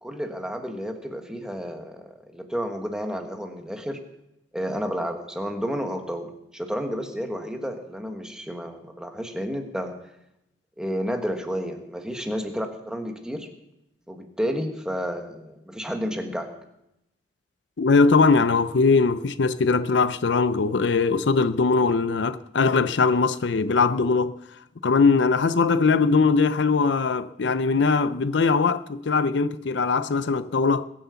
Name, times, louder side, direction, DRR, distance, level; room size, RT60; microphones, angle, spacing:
voice 1, 0.0-4.0 4.5-10.0 10.8-13.5 14.1-16.5, equal, 5° right, 1.4 m, -31 dB
voice 2, 17.8-24.3 24.8-30.9, left 4 dB, 70° left, 0.5 m, -21 dB
21.5 x 7.7 x 7.0 m
head